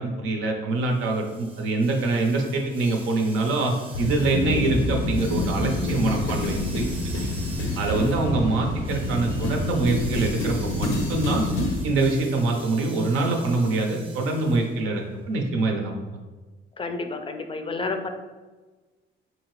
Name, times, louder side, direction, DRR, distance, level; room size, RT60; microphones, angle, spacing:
voice 1, 0.0-6.9 7.8-11.5 11.8-16.0, right 3 dB, 90° right, 2 dB, 0.7 m, -24 dB
sound 1, 0.9-14.8, right 3 dB, 25° right, 0.7 m, -45 dB
sound 2, 3.9-11.8, left 2 dB, 90° left, 0.6 m, -27 dB
voice 2, 16.8-18.1, left 3 dB, 25° left, 6 dB, 0.4 m, -30 dB
4.0 x 2.8 x 3.1 m, 1.3 s
cardioid pair, 90°, 20 cm